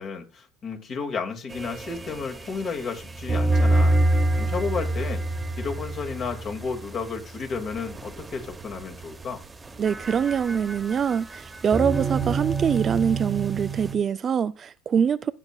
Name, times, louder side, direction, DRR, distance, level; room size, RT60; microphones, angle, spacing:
voice 1, 0.0-4.0 4.4-5.2 5.6-9.4, left 5 dB, 45° left, 2.0 m, -32 dB
sound 1, 1.5-14.0, right 2 dB, 15° right, 0.9 m, -27 dB
voice 2, 9.8-15.3, right 7 dB, 35° right, 0.3 m, -24 dB
17.5 x 5.9 x 2.3 m
supercardioid pair, 100°, 0 cm